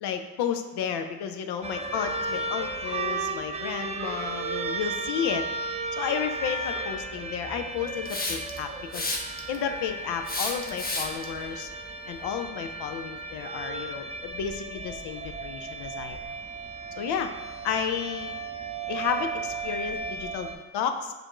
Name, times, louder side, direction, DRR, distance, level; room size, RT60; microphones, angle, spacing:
voice 1, 0.0-5.5 5.9-9.1 9.5-11.7 12.1-16.2 17.0-17.3 17.6-18.4 18.8-21.1, left 7 dB, 70° left, 7 dB, 0.6 m, -32 dB
sound 1, 1.6-20.6, right 3 dB, 15° right, 0.4 m, -35 dB
Hiss, 8.1-8.6 8.9-9.6 10.3-11.2, left 2 dB, 20° left, 0.8 m, -31 dB
6.7 x 2.6 x 3.0 m, 1.2 s
supercardioid pair, 65°, 41 cm